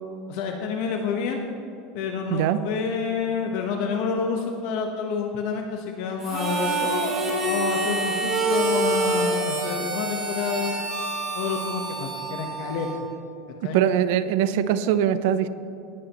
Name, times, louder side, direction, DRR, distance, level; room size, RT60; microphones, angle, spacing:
voice 1, 0.3-1.4 1.9-7.1 7.5-10.7 11.3-13.1 13.6-13.8, left 5 dB, 55° left, 2 dB, 1.0 m, -28 dB
Harmonica, 6.2-13.1, right 2 dB, 25° right, 2.4 m, -27 dB
voice 2, 13.7-15.5, right 10 dB, 65° right, 13 dB, 0.6 m, -22 dB
19.5 x 9.8 x 3.0 m, 2.7 s
supercardioid pair, 165°, 0 cm